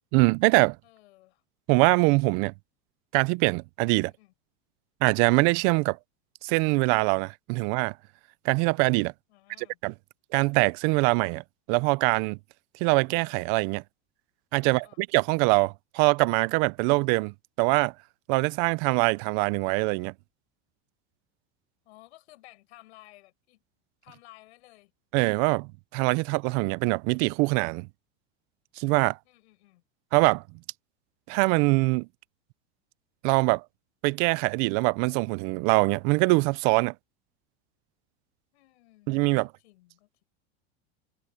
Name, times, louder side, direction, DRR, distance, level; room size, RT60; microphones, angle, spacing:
voice 1, 0.1-0.8 1.7-2.5 3.1-4.1 5.0-6.0 6.4-7.9 8.4-9.1 9.8-9.9 10.3-11.4 11.7-12.4 12.8-13.8 14.5-17.9 18.3-20.1 25.1-27.9 28.8-29.2 30.1-30.4 31.3-32.1 33.2-33.6 34.0-36.9 39.1-39.5, right 27 dB, 50° right, 0.5 m, -23 dB
voice 2, 0.8-1.4 4.0-4.3 9.3-9.8 14.6-15.0 21.8-23.6 24.0-24.9 29.2-29.8 38.5-40.2, left 18 dB, 75° left, 7.7 m, -55 dB
supercardioid pair, 150°, 33 cm